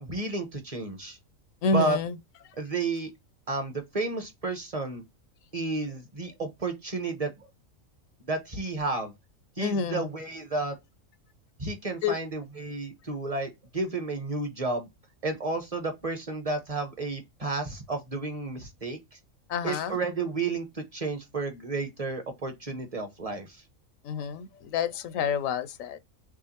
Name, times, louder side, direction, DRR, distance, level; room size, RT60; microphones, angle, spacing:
voice 1, 0.0-1.2 1.7-2.0 2.6-3.1 3.5-5.0 5.5-7.5 8.3-9.1 9.6-10.7 11.6-14.9 15.2-19.0 19.6-23.5, right 3 dB, 30° right, 1.0 m, -32 dB
voice 2, 1.6-2.2 9.6-10.1 12.0-12.2 19.5-19.9 24.0-26.0, left 5 dB, 75° left, 0.9 m, -28 dB
6.2 x 2.4 x 2.9 m
omnidirectional pair, 1.4 m